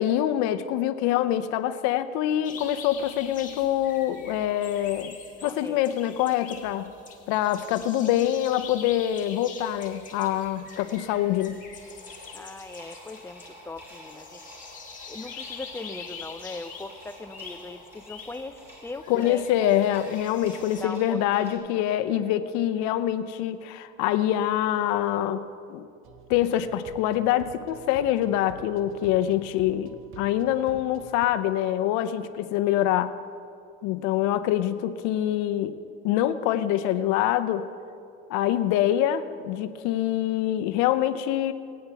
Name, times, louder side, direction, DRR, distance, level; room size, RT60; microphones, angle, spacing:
voice 1, 0.0-5.1 5.4-6.9 7.3-11.6 19.1-25.4 25.7-25.9 26.3-33.1 33.8-35.7 36.0-37.7 38.3-41.5, left 12 dB, 75° left, 11 dB, 0.6 m, -25 dB
sound 1, 2.4-20.8, left 6 dB, 25° left, 1.6 m, -44 dB
voice 2, 5.4-6.2 12.3-14.5 15.1-19.9 20.8-21.8 22.1-22.4, left 2 dB, 10° left, 8 dB, 0.5 m, -40 dB
sound 2, 11.7-21.6, equal, 10° right, 3.5 m, -49 dB
bells electronic loop, 26.0-31.3, right 8 dB, 45° right, 0.9 m, -48 dB
19.0 x 9.5 x 3.4 m, 2.4 s
cardioid pair, 125°, 29 cm